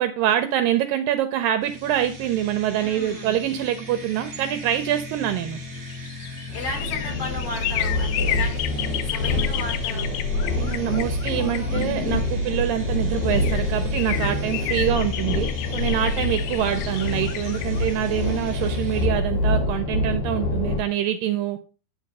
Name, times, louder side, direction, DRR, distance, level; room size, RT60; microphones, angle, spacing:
voice 1, 0.0-5.6 10.5-21.6, right 11 dB, 80° right, 9 dB, 2.1 m, -25 dB
sound 1, 1.6-19.1, left 2 dB, 35° right, 1.6 m, -39 dB
voice 2, 2.8-3.4 6.5-8.6 9.0-10.1 11.4-11.7 16.5-16.7, left 2 dB, 40° left, 0 dB, 4.9 m, -35 dB
sound 2, 5.6-12.4 13.0-13.1 13.3-19.1 19.4-19.5, left 13 dB, 80° left, 1.9 m, -32 dB
sound 3, 6.5-20.8, left 2 dB, 60° left, 2.9 m, -26 dB
10.0 x 4.1 x 5.3 m, 0.36 s
omnidirectional pair, 4.4 m